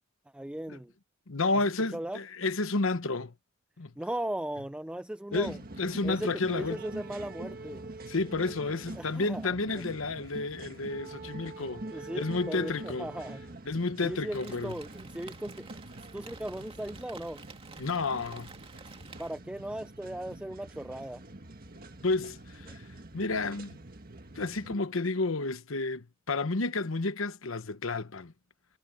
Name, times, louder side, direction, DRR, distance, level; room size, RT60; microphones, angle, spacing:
voice 1, 0.3-0.9 1.9-2.2 4.0-5.6 6.0-7.9 9.0-9.9 11.8-13.4 14.0-15.7 16.1-17.4 19.2-21.2, right 1 dB, 5° right, 0.4 m, -37 dB
voice 2, 1.3-3.3 3.8-3.9 5.3-6.8 8.1-11.9 12.1-13.1 13.7-14.8 17.8-18.5 22.0-22.8 23.1-23.8 24.3-28.3, left 3 dB, 80° left, 1.1 m, -31 dB
sound 1, 5.3-24.8, right 2 dB, 45° right, 1.6 m, -45 dB
Rain, 14.3-19.3, right 4 dB, 25° right, 2.3 m, -51 dB
head